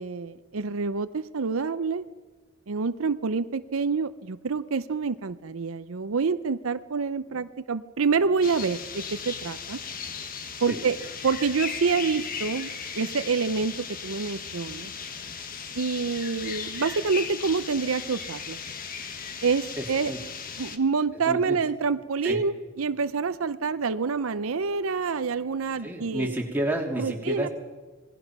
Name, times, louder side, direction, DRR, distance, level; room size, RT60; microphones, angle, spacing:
voice 1, 0.0-2.1 2.7-9.8 10.6-11.0 11.2-14.9 15.7-18.6 19.4-20.1 20.6-26.3 27.0-27.5, right 5 dB, 85° right, 12 dB, 0.7 m, -27 dB
sound 1, 8.4-20.8, left 6 dB, 40° left, 1.4 m, -37 dB
voice 2, 19.8-20.2 21.3-21.6 22.2-22.4 25.8-27.5, right 1 dB, 10° right, -1 dB, 2.9 m, -30 dB
26.5 x 19.5 x 6.0 m, 1.4 s
head